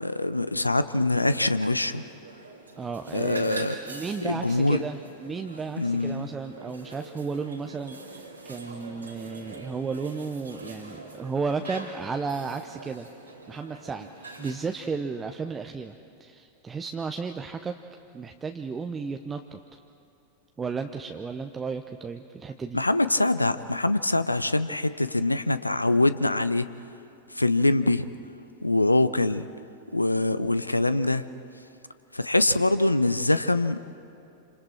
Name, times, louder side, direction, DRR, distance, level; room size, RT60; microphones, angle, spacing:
voice 1, 0.0-2.0 3.1-3.8 4.2-4.8 5.8-6.3 22.7-26.7 27.3-28.1 28.6-29.5 29.9-31.2 32.1-33.8, left 2 dB, 85° left, 14 dB, 0.5 m, -24 dB
sound 1, 1.2-14.6, right 2 dB, 85° right, 2.8 m, -44 dB
voice 2, 2.8-13.1 13.5-17.8 18.1-19.6 20.6-22.8, right 5 dB, 15° right, 6 dB, 0.8 m, -33 dB
27.0 x 27.0 x 4.5 m, 2.8 s
figure-of-eight pair, 90°, 0 cm